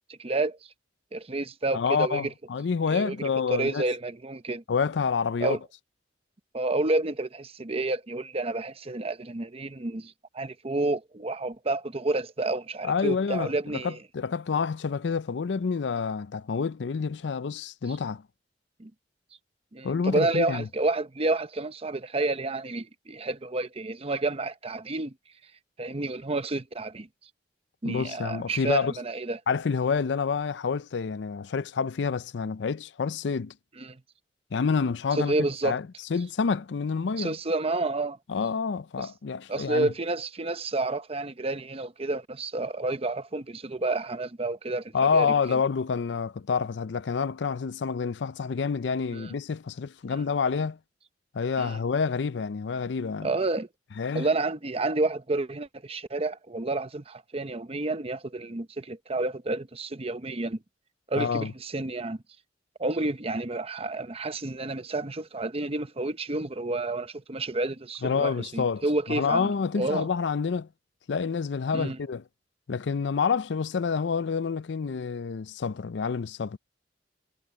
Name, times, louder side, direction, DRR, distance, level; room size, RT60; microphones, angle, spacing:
voice 1, 0.2-0.6 1.1-2.3 2.9-3.1 3.5-4.6 5.4-5.6 6.5-14.0 18.8-18.9 19.7-25.1 25.8-27.1 27.8-29.4 33.8-34.0 35.1-35.8 37.2-38.2 39.0-39.1 39.5-45.6 49.1-49.3 50.1-50.2 51.6-51.8 53.2-53.7 54.1-60.6 61.1-62.2 62.8-69.5 69.8-70.1 71.7-72.0, right 2 dB, 35° right, 0.9 m, -30 dB
voice 2, 1.7-3.8 4.7-5.6 12.8-18.2 19.8-20.7 27.8-28.9 29.5-33.5 34.5-35.3 35.6-35.8 36.1-37.4 38.3-39.9 44.9-50.8 51.3-53.3 54.0-54.3 61.2-61.5 68.0-70.7 71.1-72.2 72.7-76.6, left 5 dB, 80° left, 0.5 m, -28 dB
head